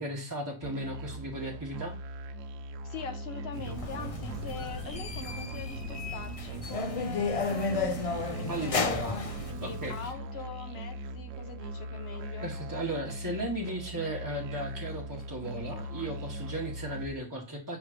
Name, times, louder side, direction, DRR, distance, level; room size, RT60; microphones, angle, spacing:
voice 1, 0.0-2.0 8.5-9.2 9.6-10.0 12.4-17.8, right 1 dB, 15° right, 1.1 m, -36 dB
Musical instrument, 0.6-17.1, right 1 dB, 85° right, 1.0 m, -40 dB
voice 2, 2.8-12.5, left 5 dB, 55° left, 1.1 m, -43 dB
Rain, 3.5-10.1, right 4 dB, 60° right, 1.1 m, -45 dB
sound 1, 3.7-9.5, left 4 dB, 40° left, 0.6 m, -33 dB
7.1 x 3.1 x 4.9 m
omnidirectional pair, 1.3 m